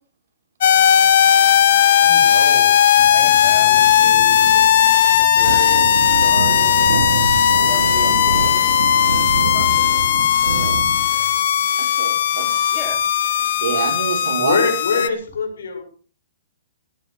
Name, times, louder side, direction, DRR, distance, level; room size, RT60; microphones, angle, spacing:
sound 1, 0.6-15.1, left 10 dB, 50° left, 1.2 m, -16 dB
voice 1, 2.0-2.8 3.1-4.6 5.2-6.8 7.6-8.7 9.5-9.8 10.4-10.7 11.1-11.2 12.7-13.0, left 2 dB, 10° left, 3 dB, 3.3 m, -35 dB
sound 2, 3.0-11.3, right 5 dB, 85° right, 2.6 m, -27 dB
voice 2, 11.8-12.7 13.6-14.6 14.9-15.1, right 7 dB, 55° right, 5 dB, 4.5 m, -26 dB
voice 3, 14.4-15.8, left 5 dB, 85° left, 5 dB, 6.5 m, -22 dB
17.5 x 10.0 x 6.6 m, 0.41 s
hypercardioid pair, 175°, 0 cm